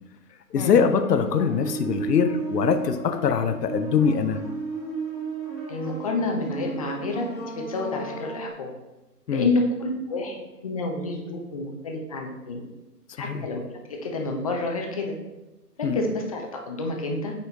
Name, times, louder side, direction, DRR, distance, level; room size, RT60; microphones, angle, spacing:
voice 1, 0.5-4.4 9.3-9.5 13.2-13.4 15.8-16.0, left 6 dB, 80° left, 9 dB, 0.7 m, -23 dB
sound 1, 0.8-8.5, right 4 dB, ahead, 1.9 m, -34 dB
voice 2, 5.7-7.3 7.5-8.7 9.3-12.6 13.2-13.6 13.9-15.2 15.8-17.3, left 2 dB, 25° left, 2 dB, 0.5 m, -29 dB
8.1 x 4.3 x 2.8 m, 1.1 s
figure-of-eight pair, 130°, 48 cm